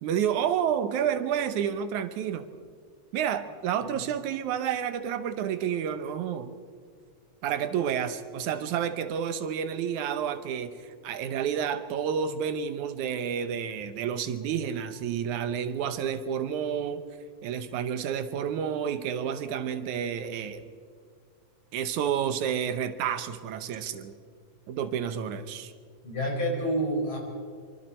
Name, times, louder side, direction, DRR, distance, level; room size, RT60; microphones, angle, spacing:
voice 1, 0.0-2.5 3.1-6.5 7.4-17.0 17.4-20.6 21.7-24.2 24.7-25.7, right 8 dB, 80° right, 10 dB, 2.5 m, -30 dB
voice 2, 26.0-27.2, right 1 dB, 45° left, -1 dB, 5.9 m, -28 dB
25.5 x 24.5 x 4.4 m, 2.1 s
omnidirectional pair, 3.4 m